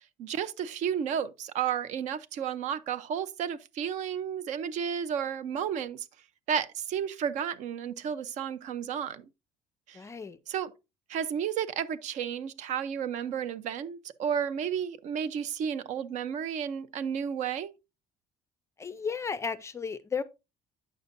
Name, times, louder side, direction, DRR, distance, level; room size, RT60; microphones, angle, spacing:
voice 1, 0.2-6.1 6.5-9.3 9.9-10.0 10.5-10.7 11.1-17.7, right 8 dB, 55° right, 0.6 m, -32 dB
voice 2, 9.9-10.4 18.8-20.2, left 5 dB, 20° left, 0.4 m, -34 dB
9.1 x 6.6 x 2.6 m
cardioid pair, 160°, 15 cm